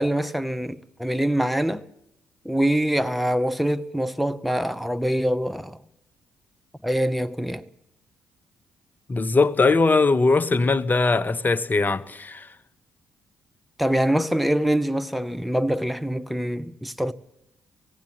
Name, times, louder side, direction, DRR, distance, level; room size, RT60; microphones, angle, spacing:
voice 1, 0.0-1.8 2.4-5.8 6.8-7.6 13.8-17.1, equal, ahead, 0.8 m, -24 dB
voice 2, 9.1-12.5, left 3 dB, 30° left, 0.9 m, -20 dB
18.0 x 16.5 x 8.8 m
figure-of-eight pair, 40°, 6 cm